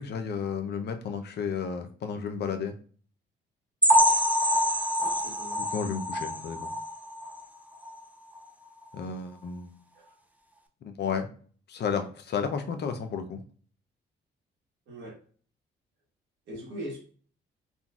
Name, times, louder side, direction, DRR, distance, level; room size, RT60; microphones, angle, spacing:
voice 1, 0.0-2.7 5.7-6.7 8.9-9.7 10.8-11.3 11.7-13.4, left 6 dB, 55° left, 6 dB, 0.5 m, -32 dB
sound 1, 3.8-7.4 7.8-8.0 8.4-8.5 8.9-9.0, equal, 10° right, 0.5 m, -25 dB
voice 2, 5.0-5.7 9.9-10.1 14.9-15.2 16.5-17.0, equal, 70° right, -3 dB, 1.0 m, -40 dB
3.8 x 2.3 x 2.3 m, 0.44 s
supercardioid pair, 60°, 20 cm